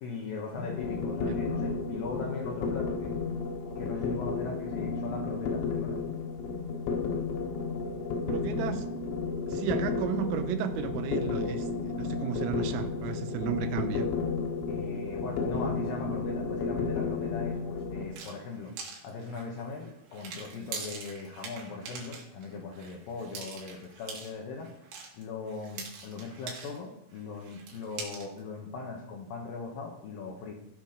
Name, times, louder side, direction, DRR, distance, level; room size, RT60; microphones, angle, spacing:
voice 1, 0.0-3.2 3.8-6.0 14.7-18.7 19.0-24.7 25.1-30.5, left 4 dB, 70° left, 2.2 m, -39 dB
sound 1, 0.6-18.0, left 4 dB, 85° left, 4.2 m, -32 dB
voice 2, 8.3-9.0 9.5-14.1, right 9 dB, 80° right, 3.4 m, -34 dB
sound 2, 18.1-26.9 27.1-28.4, right 5 dB, 65° right, 4.4 m, -44 dB
16.5 x 6.2 x 5.2 m
omnidirectional pair, 5.9 m